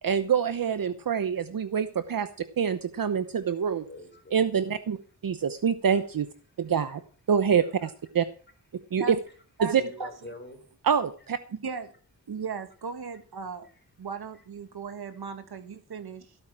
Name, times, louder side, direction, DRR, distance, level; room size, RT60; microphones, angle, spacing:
voice 1, 0.0-2.3 2.6-3.9 4.3-5.0 5.2-6.3 6.6-7.0 7.3-8.2 8.9-9.2 9.6-9.8 10.8-11.4, right 7 dB, 60° right, 11 dB, 0.9 m, -25 dB
voice 2, 3.8-4.5 5.9-6.0 6.6-7.0 7.6-7.9 8.7-9.1 9.8-10.7 13.6-13.8 14.3-14.4, left 1 dB, 30° left, 5 dB, 4.1 m, -47 dB
voice 3, 9.6-10.1 11.5-11.9 12.3-13.7 14.0-16.4, right 5 dB, 80° right, 8 dB, 1.9 m, -37 dB
16.5 x 9.0 x 4.8 m, 0.40 s
wide cardioid pair, 125°, 38 cm